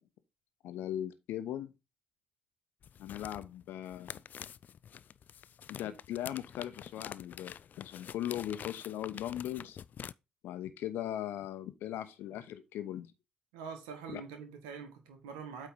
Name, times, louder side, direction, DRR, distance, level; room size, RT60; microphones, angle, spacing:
voice 1, 0.6-1.7 3.0-4.2 5.7-9.8 10.4-13.1 14.1-14.2, left 12 dB, 60° left, 0.9 m, -39 dB
sound 1, 2.8-10.1, left 8 dB, 45° left, 0.3 m, -47 dB
voice 2, 13.5-15.7, right 6 dB, 70° right, 1.3 m, -44 dB
8.5 x 3.3 x 5.4 m
figure-of-eight pair, 45°, 4 cm